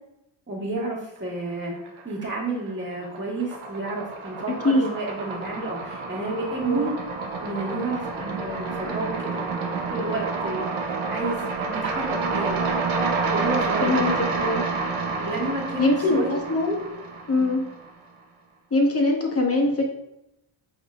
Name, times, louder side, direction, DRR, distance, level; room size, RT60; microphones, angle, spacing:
voice 1, 0.5-1.8 2.0-6.9 7.4-10.8 11.1-12.7 13.3-14.2 15.2-16.3 17.3-17.6, right 2 dB, 25° right, -3 dB, 1.4 m, -31 dB
sound 1, 1.6-2.4 2.7-17.9, right 4 dB, 70° right, 0.8 m, -29 dB
voice 2, 6.6-6.9 13.8-14.6 15.8-16.8 17.3-17.6 18.7-19.9, left 2 dB, 30° left, 1 dB, 0.9 m, -22 dB
5.5 x 3.6 x 2.3 m, 0.84 s
cardioid pair, 85°, 50 cm